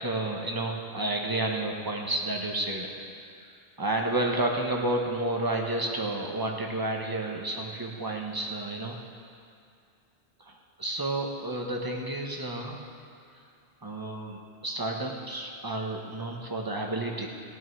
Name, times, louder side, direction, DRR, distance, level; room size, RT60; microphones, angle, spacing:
voice 1, 0.0-3.2 3.8-9.0 10.4-12.9 13.8-17.3, right 2 dB, 20° right, 0 dB, 1.3 m, -31 dB
18.0 x 9.8 x 4.7 m, 2.5 s
omnidirectional pair, 1.3 m